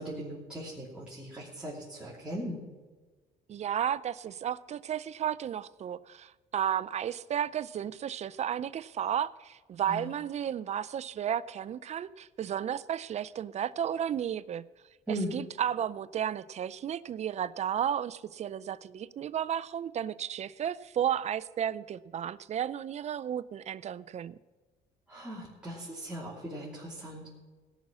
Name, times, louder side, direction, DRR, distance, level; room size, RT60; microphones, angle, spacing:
voice 1, 0.0-2.6 9.9-10.1 15.1-15.3 25.1-27.3, right 1 dB, 5° right, -7 dB, 3.0 m, -38 dB
voice 2, 3.5-14.6 15.1-24.4, right 9 dB, 40° right, 18 dB, 0.4 m, -33 dB
17.5 x 6.2 x 7.4 m, 1.3 s
cardioid pair, 110°, 17 cm